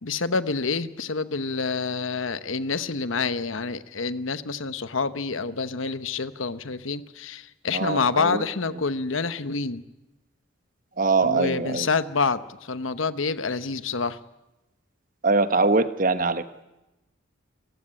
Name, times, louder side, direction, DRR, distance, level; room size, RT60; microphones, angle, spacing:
voice 1, 0.0-9.8 11.2-14.2, left 4 dB, 80° left, 13 dB, 1.0 m, -27 dB
voice 2, 7.7-8.4 11.0-11.9 15.2-16.4, right 3 dB, 40° right, 11 dB, 1.1 m, -22 dB
29.0 x 15.5 x 10.0 m, 1.0 s
head